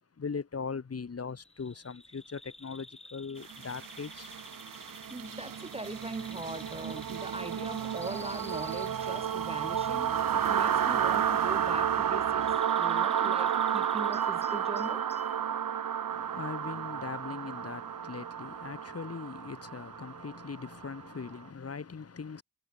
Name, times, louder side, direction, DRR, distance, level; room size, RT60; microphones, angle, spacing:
voice 1, 0.2-4.4 16.1-22.4, left 5 dB, 45° left, 1.6 m, -40 dB
Bird vocalization bird call bird song, 1.4-15.4, left 2 dB, 20° left, 5.0 m, -51 dB
sound 1, 3.5-21.3, right 9 dB, 70° right, 1.0 m, -31 dB
voice 2, 5.1-12.4 12.8-15.0, right 2 dB, 15° right, 0.9 m, -41 dB
cardioid pair, 75°, 34 cm